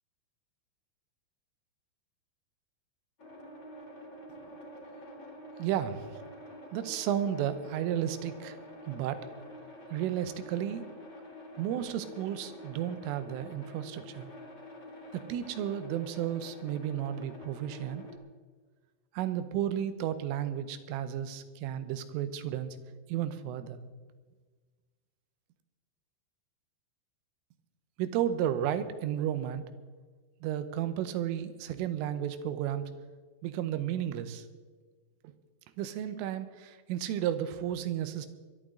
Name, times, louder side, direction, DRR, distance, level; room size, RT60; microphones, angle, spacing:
sound 1, 3.2-18.2, left 1 dB, 25° left, 2.5 m, -48 dB
voice 1, 5.6-6.1 6.7-8.6 8.9-9.2 9.9-10.9 11.6-14.3 15.1-18.1 19.1-22.8 23.1-23.8 28.0-29.6 30.4-32.8 33.4-34.5 35.2-35.3 35.8-38.3, right 10 dB, 80° right, 11 dB, 3.4 m, -33 dB
22.5 x 13.0 x 3.8 m, 1.4 s
omnidirectional pair, 5.8 m